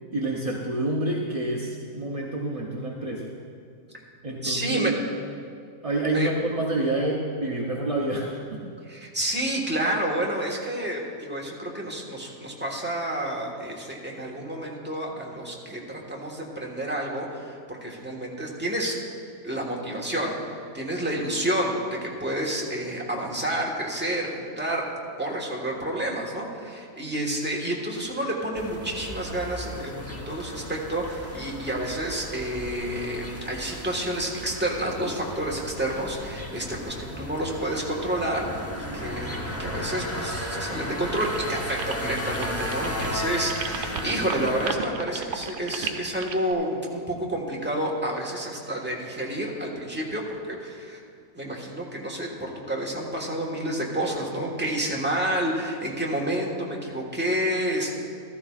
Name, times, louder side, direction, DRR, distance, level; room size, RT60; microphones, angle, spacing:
voice 1, 0.1-3.3 4.2-5.0 5.8-8.6, right 2 dB, 40° right, -2 dB, 0.5 m, -28 dB
voice 2, 4.4-4.9 6.1-6.3 8.9-19.0 19.4-20.4 20.7-24.8 25.2-51.0 51.3-58.0, right 1 dB, 5° right, -2 dB, 1.2 m, -29 dB
sound 1, 28.5-44.7, equal, 15° left, 0.7 m, -35 dB
sound 2, 41.2-46.5, right 7 dB, 85° right, 1.2 m, -35 dB
15.0 x 13.0 x 2.4 m, 2.3 s
omnidirectional pair, 1.7 m